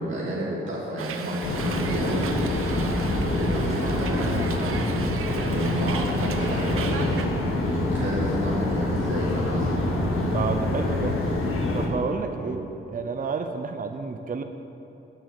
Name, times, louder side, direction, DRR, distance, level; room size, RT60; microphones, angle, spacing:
voice 1, 0.0-2.9 3.2-9.8 12.4-12.5, right 1 dB, 65° right, -7 dB, 2.8 m, -31 dB
Hiss, 1.0-7.3, right 6 dB, 90° right, 0.7 m, -36 dB
sound 1, 1.4-11.9, left 1 dB, 85° left, 1.7 m, -26 dB
voice 2, 10.3-11.1 11.7-12.6 12.9-14.4, right 4 dB, 40° right, 6 dB, 0.7 m, -30 dB
9.7 x 6.8 x 8.4 m, 2.8 s
cardioid pair, 75°, 21 cm